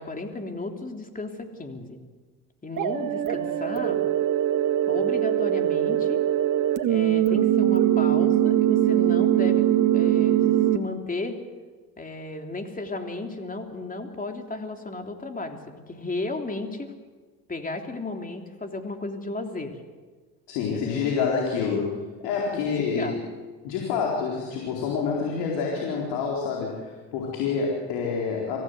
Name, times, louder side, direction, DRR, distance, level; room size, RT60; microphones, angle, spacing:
voice 1, 0.0-2.0 2.6-4.0 4.9-6.2 6.9-9.7 9.9-10.4 10.7-11.4 12.0-15.6 15.9-16.9 17.5-19.8 20.7-21.1 22.5-23.2, left 2 dB, 20° left, 4 dB, 3.4 m, -34 dB
sound 1, 2.8-10.8, right 12 dB, 55° right, 1.9 m, -22 dB
voice 2, 20.5-23.2 23.6-28.6, left 5 dB, 85° left, -1 dB, 4.3 m, -27 dB
25.5 x 16.5 x 8.0 m, 1.4 s
supercardioid pair, 85°, 38 cm